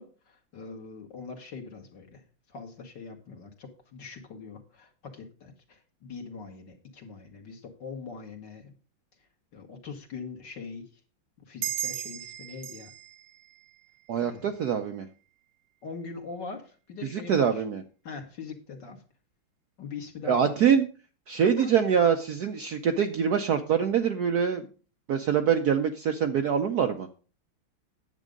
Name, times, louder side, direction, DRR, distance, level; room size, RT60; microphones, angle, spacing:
voice 1, 0.0-2.2 2.5-8.7 9.5-10.9 11.5-12.9 14.2-14.5 15.8-17.6 18.0-19.0 19.8-20.7 21.6-21.7, left 5 dB, 60° left, 3 dB, 2.1 m, -42 dB
sound 1, 11.6-14.7, right 13 dB, 85° right, 1.7 m, -37 dB
voice 2, 14.1-15.1 17.0-17.8 20.3-20.9 21.3-24.7 25.1-27.1, right 7 dB, 65° right, 6 dB, 1.0 m, -24 dB
9.9 x 7.5 x 5.2 m, 0.38 s
omnidirectional pair, 2.3 m